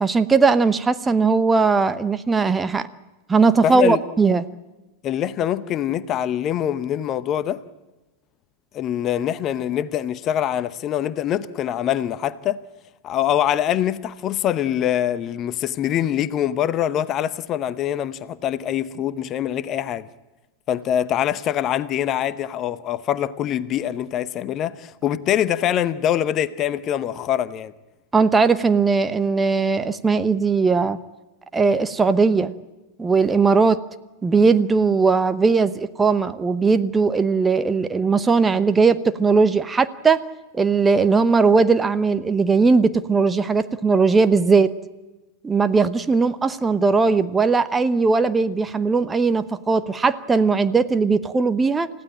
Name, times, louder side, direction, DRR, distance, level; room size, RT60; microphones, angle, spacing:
voice 1, 0.0-2.9 3.3-4.5 28.1-31.0 31.5-32.5 33.0-33.8 34.2-40.2 40.5-44.7 45.4-51.9, right 4 dB, 15° right, 0.9 m, -19 dB
voice 2, 3.6-4.0 5.0-7.6 8.7-12.6 13.0-20.1 20.7-27.7, left 10 dB, 30° left, 0.8 m, -24 dB
29.0 x 15.5 x 8.7 m
figure-of-eight pair, 90°, 0 cm